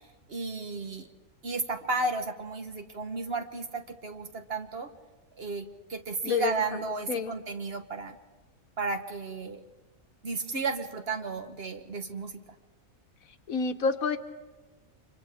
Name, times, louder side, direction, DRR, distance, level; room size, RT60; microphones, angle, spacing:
voice 1, 0.3-1.1 1.4-4.9 5.4-8.2 8.8-9.6 10.2-12.4, right 3 dB, 45° right, 6 dB, 1.4 m, -33 dB
voice 2, 13.5-14.2, left 5 dB, 80° left, 8 dB, 1.5 m, -28 dB
30.0 x 25.5 x 3.5 m, 1.2 s
omnidirectional pair, 1.5 m